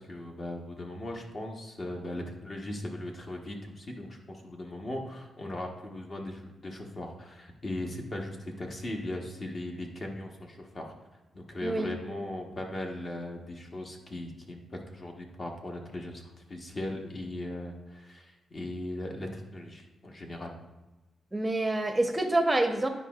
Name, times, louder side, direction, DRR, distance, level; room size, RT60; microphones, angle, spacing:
voice 1, 0.0-10.9 11.3-16.2 16.5-20.5, left 1 dB, 35° left, 1 dB, 1.0 m, -38 dB
voice 2, 21.3-22.9, right 2 dB, 15° right, 4 dB, 0.7 m, -26 dB
9.7 x 5.1 x 2.4 m, 1.1 s
cardioid pair, 125°, 0 cm